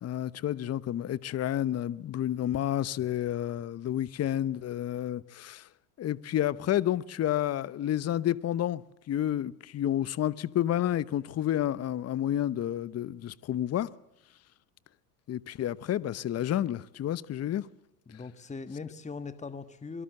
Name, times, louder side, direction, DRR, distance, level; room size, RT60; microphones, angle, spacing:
voice 1, 0.0-5.7 6.0-13.9 15.3-17.7, left 11 dB, 35° left, 0.9 m, -30 dB
voice 2, 18.1-20.0, left 4 dB, 15° left, 1.6 m, -40 dB
24.0 x 23.0 x 7.8 m
hypercardioid pair, 75°, 46 cm